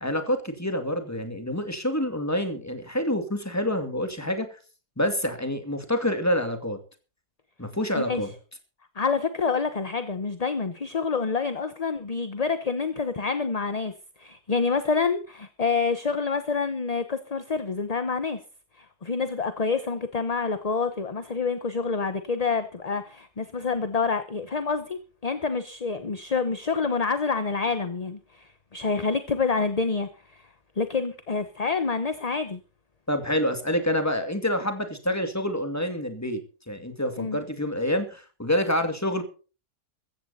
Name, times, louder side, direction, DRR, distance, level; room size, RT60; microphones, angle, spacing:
voice 1, 0.0-4.5 5.0-6.8 7.6-8.3 33.1-36.4 36.7-39.2, left 1 dB, 10° left, 7 dB, 2.5 m, -27 dB
voice 2, 8.9-13.9 14.2-18.4 18.8-30.4 30.8-32.6 37.2-37.4, left 4 dB, 30° left, 10 dB, 0.9 m, -27 dB
15.5 x 14.0 x 4.2 m, 0.36 s
omnidirectional pair, 1.7 m